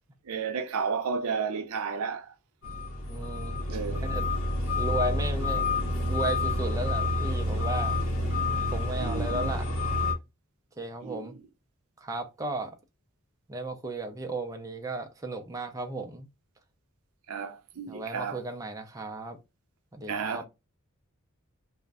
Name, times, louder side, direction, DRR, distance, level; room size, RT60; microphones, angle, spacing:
voice 1, 0.3-2.3 3.7-4.1 9.0-9.5 11.0-11.3 17.3-18.4 20.1-20.4, right 5 dB, 80° right, 0.5 m, -32 dB
sound 1, 2.6-10.1, left 2 dB, 65° left, 0.8 m, -28 dB
voice 2, 3.0-4.3 4.8-5.7 5.9-8.0 8.7-9.7 10.8-11.3 12.0-12.8 13.5-16.3 17.9-19.4 19.9-20.4, right 2 dB, 15° right, 0.3 m, -35 dB
2.4 x 2.1 x 3.4 m
head